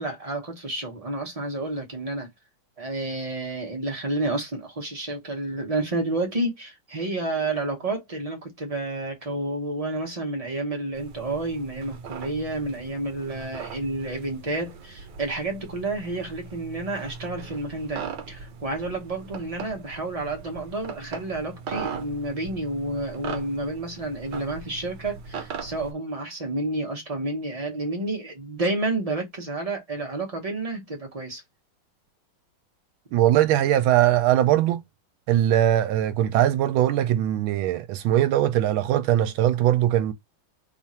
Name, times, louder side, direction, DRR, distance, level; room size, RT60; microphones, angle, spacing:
voice 1, 0.0-2.3 2.8-31.4, right 2 dB, 45° right, 0.4 m, -30 dB
sound 1, 10.9-25.9, right 6 dB, 65° right, 1.4 m, -39 dB
voice 2, 33.1-34.8 35.3-40.1, right 12 dB, 80° right, 1.4 m, -21 dB
3.4 x 2.5 x 4.2 m
omnidirectional pair, 2.2 m